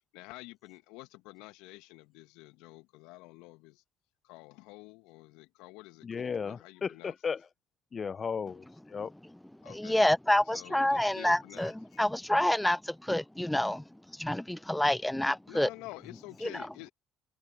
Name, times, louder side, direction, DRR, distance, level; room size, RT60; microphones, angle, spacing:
voice 1, 0.1-3.8 4.2-7.1 9.6-10.0 10.5-12.1 15.5-16.9, left 23 dB, 70° left, 2.2 m, -49 dB
voice 2, 6.0-7.5 7.9-9.1 16.1-16.2, left 6 dB, 40° left, 1.5 m, -35 dB
voice 3, 9.7-15.7 16.4-16.6, left 1 dB, 5° left, 0.3 m, -28 dB
hypercardioid pair, 55°, 0 cm